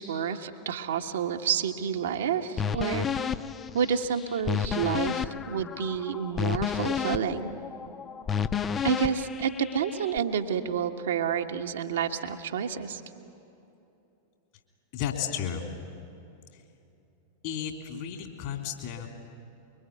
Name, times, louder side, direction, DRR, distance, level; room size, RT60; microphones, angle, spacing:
voice 1, 0.0-3.3 3.7-7.6 8.8-13.0, right 7 dB, 60° right, 4 dB, 1.4 m, -29 dB
sound 1, 2.6-10.2, left 7 dB, 20° left, 0.7 m, -31 dB
voice 2, 14.9-15.7 17.4-19.1, left 9 dB, 50° left, 4 dB, 3.4 m, -33 dB
24.5 x 23.5 x 9.6 m, 2.8 s
figure-of-eight pair, 90°, 0 cm